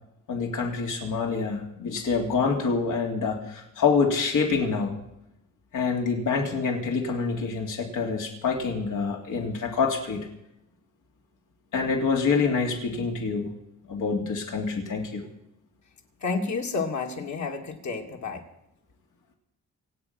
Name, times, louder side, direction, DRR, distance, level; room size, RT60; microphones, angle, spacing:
voice 1, 0.3-5.0 5.7-10.3 11.7-13.5 13.9-15.2, left 5 dB, 90° left, 1 dB, 3.1 m, -26 dB
voice 2, 16.2-18.4, left 4 dB, 65° left, 3 dB, 2.7 m, -30 dB
26.0 x 8.9 x 5.9 m, 0.83 s
cardioid pair, 115°, 30 cm